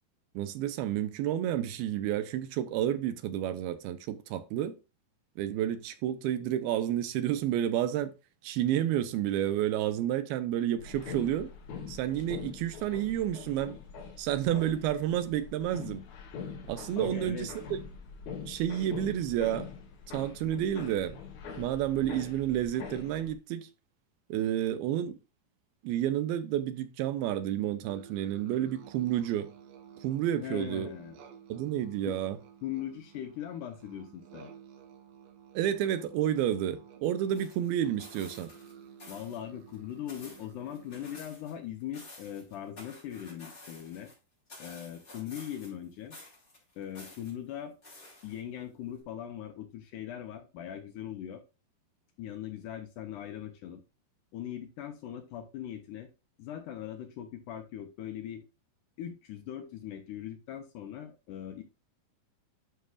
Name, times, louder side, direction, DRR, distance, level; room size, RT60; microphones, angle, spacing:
voice 1, 0.4-4.7 5.4-8.1 8.4-11.5 11.9-13.7 14.2-16.0 16.7-17.5 18.4-19.7 20.1-21.2 21.6-23.7 24.3-25.2 25.8-29.5 30.0-30.9 31.5-32.4 35.5-38.5, right 11 dB, 90° right, 2.7 m, -30 dB
sound 1, 10.8-23.3, left 6 dB, 60° left, 2.3 m, -43 dB
voice 2, 17.0-17.5 30.4-31.2 32.1-32.2 32.6-34.5 39.1-44.1 44.6-46.2 46.8-47.8 48.2-51.4 52.2-53.8 54.3-56.1 56.4-58.4 59.0-61.6, left 10 dB, 75° left, 2.0 m, -40 dB
sound 2, 27.8-41.2, right 8 dB, 70° right, 2.8 m, -53 dB
sound 3, 37.3-38.7 39.0-39.4 39.7-41.5 41.8-44.1 44.5-45.8 46.1-47.3 47.8-48.6 49.0-49.1, left 2 dB, 25° left, 3.4 m, -51 dB
11.5 x 5.6 x 2.4 m
omnidirectional pair, 4.3 m